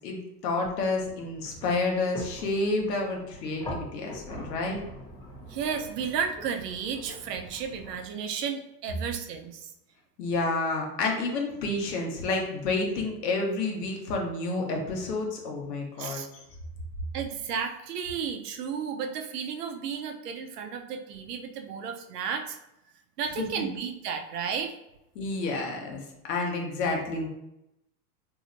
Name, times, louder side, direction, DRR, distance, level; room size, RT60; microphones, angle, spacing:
voice 1, 0.0-4.8 10.2-16.2 23.4-23.7 25.1-26.0 26.3-27.3, left 3 dB, 80° left, 1 dB, 0.9 m, -29 dB
sound 1, 0.6-8.1, equal, 10° left, 0.4 m, -43 dB
voice 2, 5.5-9.7 16.0-16.3 17.1-22.6 23.2-24.8, right 7 dB, 80° right, 4 dB, 0.6 m, -33 dB
3.0 x 2.7 x 2.5 m, 0.86 s
hypercardioid pair, 110°, 47 cm